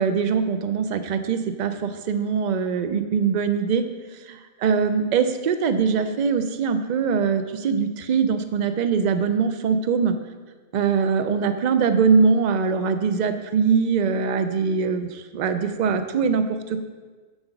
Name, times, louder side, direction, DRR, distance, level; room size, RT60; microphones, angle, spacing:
voice 1, 0.0-3.9 4.2-10.2 10.7-16.8, right 6 dB, 55° right, 9 dB, 0.5 m, -22 dB
7.6 x 4.0 x 5.9 m, 1.4 s
omnidirectional pair, 1.2 m